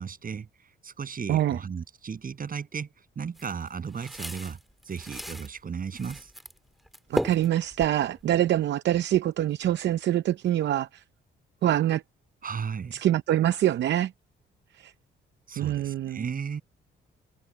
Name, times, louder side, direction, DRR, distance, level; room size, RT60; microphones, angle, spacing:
voice 1, 0.0-4.6 4.8-6.3 12.4-13.0 15.5-16.6, right 6 dB, 45° right, 7.8 m, -35 dB
sound 1, 3.4-5.5 5.9-6.6 6.9-8.4, equal, ahead, 2.0 m, -35 dB
voice 2, 7.1-11.0 11.6-12.0 12.9-14.1 14.7-14.9 15.6-16.2, right 12 dB, 65° right, 0.7 m, -25 dB
cardioid pair, 90°, 20 cm